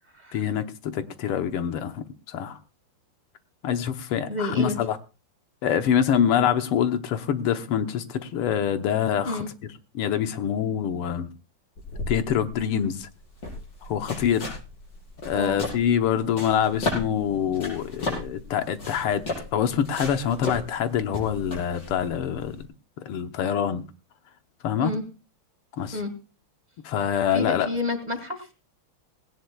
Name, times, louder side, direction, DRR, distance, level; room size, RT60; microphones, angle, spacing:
voice 1, 0.3-2.6 3.6-5.0 5.6-9.4 10.0-11.3 12.1-13.1 13.9-14.6 15.2-19.2 19.5-22.6 23.1-23.8 24.6-24.9 25.8-26.0 26.8-27.7, left 9 dB, 90° left, 1.9 m, -25 dB
voice 2, 4.3-4.8 9.2-9.5 15.3-15.6 24.8-25.0 25.9-26.1 27.3-28.5, left 2 dB, 20° right, 2.0 m, -29 dB
sound 1, 11.8-22.6, left 2 dB, 50° left, 5.9 m, -35 dB
19.0 x 17.5 x 2.3 m
omnidirectional pair, 2.4 m